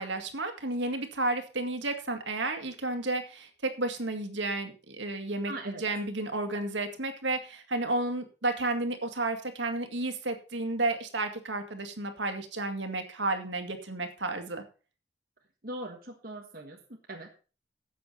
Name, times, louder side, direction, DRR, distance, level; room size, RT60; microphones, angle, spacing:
voice 1, 0.0-14.6, right 2 dB, 75° right, 7 dB, 2.1 m, -32 dB
voice 2, 5.5-5.8 15.6-17.3, right 1 dB, 50° right, 1 dB, 1.6 m, -40 dB
13.0 x 8.5 x 4.2 m, 0.35 s
head